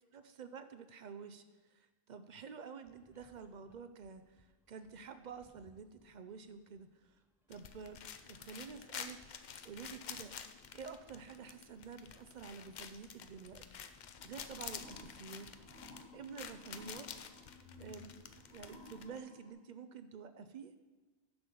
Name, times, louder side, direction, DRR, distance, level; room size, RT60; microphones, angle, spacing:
voice 1, 0.1-1.4 2.1-6.9 7.5-10.4 10.7-13.6 14.2-15.5 16.1-17.1 17.8-18.2 18.5-20.7, right 6 dB, 55° right, 10 dB, 0.5 m, -49 dB
sound 1, 2.8-17.5, equal, 5° right, 0.3 m, -71 dB
sound 2, 7.5-19.2, left 7 dB, 55° left, 0.5 m, -50 dB
sound 3, 14.2-19.5, left 2 dB, 80° left, 2.3 m, -57 dB
10.5 x 3.9 x 6.7 m, 1.3 s
omnidirectional pair, 1.1 m